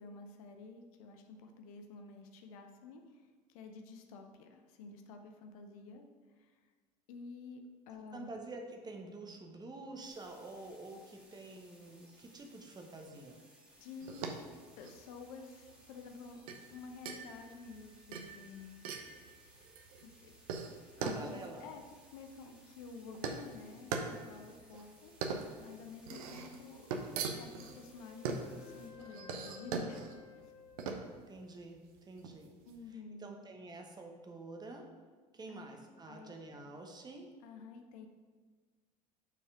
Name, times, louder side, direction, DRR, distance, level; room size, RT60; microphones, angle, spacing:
voice 1, 0.0-6.7 7.1-8.3 13.8-14.4 14.8-16.4 16.7-18.8 20.0-20.3 20.6-21.8 22.1-26.8 27.3-30.0 32.7-33.3 35.5-35.7 36.1-36.3 37.4-38.1, left 4 dB, 55° left, 4 dB, 0.8 m, -51 dB
voice 2, 8.1-13.4 21.0-21.7 31.0-32.5 32.9-34.9 35.3-37.3, right 2 dB, 20° right, 3 dB, 1.0 m, -48 dB
sound 1, 9.9-28.9, right 1 dB, 5° right, 1.9 m, -63 dB
sound 2, 14.0-32.8, right 5 dB, 60° right, 0.7 m, -42 dB
Wind instrument woodwind instrument, 27.5-31.7, left 7 dB, 25° left, 0.6 m, -56 dB
5.8 x 4.7 x 5.5 m, 1.4 s
figure-of-eight pair, 70°, 21 cm